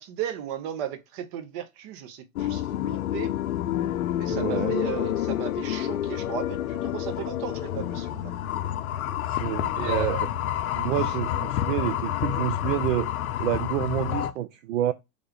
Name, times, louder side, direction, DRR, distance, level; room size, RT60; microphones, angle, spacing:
voice 1, 0.0-3.3 4.2-8.3 9.7-10.3, right 9 dB, 40° right, 0.8 m, -35 dB
sound 1, 2.4-14.3, left 11 dB, 70° left, 0.6 m, -28 dB
voice 2, 4.3-4.8 9.3-10.2 10.7-13.1 13.4-14.9, right 13 dB, 60° right, 0.5 m, -28 dB
3.6 x 2.4 x 3.6 m
hypercardioid pair, 110°, 44 cm